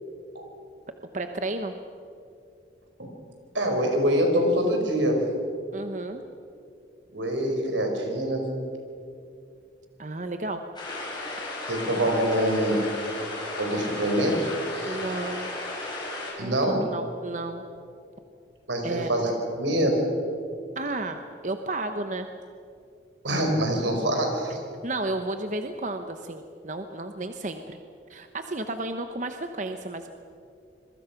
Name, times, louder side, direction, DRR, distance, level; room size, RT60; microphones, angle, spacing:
voice 1, 1.1-1.7 5.7-6.2 10.0-10.6 11.4-11.5 14.8-15.5 16.4-17.6 18.8-19.1 20.8-22.3 24.8-27.8 28.1-30.1, right 2 dB, 40° right, 7 dB, 0.9 m, -32 dB
voice 2, 3.5-5.2 7.1-8.5 11.7-12.9 13.5-15.0 16.4-16.8 18.7-19.3 19.6-20.0 23.2-24.6, equal, 85° right, 3 dB, 4.9 m, -25 dB
sound 1, 10.8-16.3, left 2 dB, 25° left, 6.3 m, -34 dB
27.0 x 22.5 x 5.9 m, 2.5 s
head